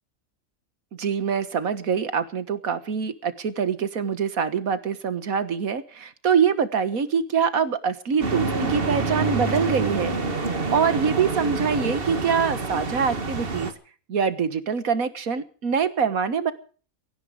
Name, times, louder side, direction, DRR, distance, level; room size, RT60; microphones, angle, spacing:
voice 1, 1.0-13.7 14.1-16.5, right 6 dB, 80° right, 13 dB, 1.9 m, -24 dB
sound 1, 8.2-13.7, right 3 dB, 45° right, 1.8 m, -27 dB
17.5 x 15.5 x 5.0 m, 0.40 s
omnidirectional pair, 1.5 m